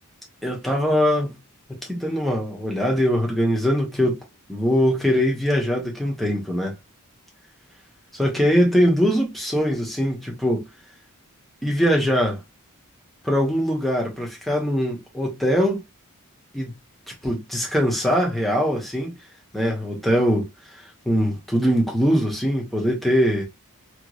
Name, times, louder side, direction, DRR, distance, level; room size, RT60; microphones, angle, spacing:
voice 1, 0.4-1.3 1.7-4.2 4.5-6.7 8.1-10.7 11.6-12.4 13.2-15.8 16.5-16.7 17.2-19.1 19.5-20.5 20.7-23.4, equal, ahead, 1.1 m, -22 dB
3.4 x 3.1 x 2.4 m
head